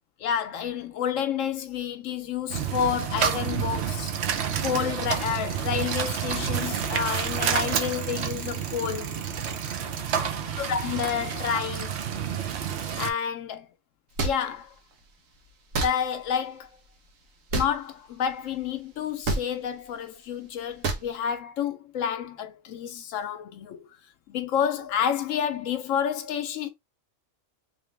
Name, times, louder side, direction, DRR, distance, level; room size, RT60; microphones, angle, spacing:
voice 1, 0.2-4.1 4.6-9.2 10.6-11.9 13.0-13.7 14.2-14.7 15.8-16.7 17.5-23.9 24.3-26.7, left 8 dB, 80° left, 1.0 m, -29 dB
sound 1, 2.5-13.1, right 8 dB, 60° right, 0.9 m, -29 dB
sound 2, 14.2-14.4 15.7-15.9 17.5-17.7 19.2-19.4 20.8-21.0, right 3 dB, 85° right, 1.3 m, -26 dB
3.4 x 3.1 x 3.2 m
omnidirectional pair, 1.3 m